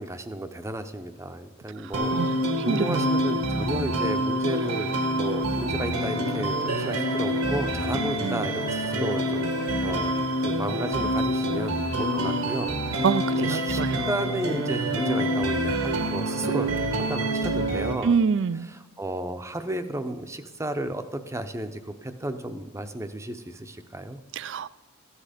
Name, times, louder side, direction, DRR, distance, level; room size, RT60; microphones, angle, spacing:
voice 1, 0.0-10.1 10.4-13.1 13.4-18.2 18.7-24.2, right 1 dB, 15° right, 9 dB, 0.6 m, -33 dB
voice 2, 1.8-3.2 8.2-8.4 13.0-14.0 18.0-18.7 24.3-24.7, right 5 dB, 55° right, 18 dB, 0.4 m, -26 dB
sound 1, 1.9-17.9, right 1 dB, 80° right, 1.6 m, -27 dB
14.5 x 9.9 x 5.1 m, 1.3 s
head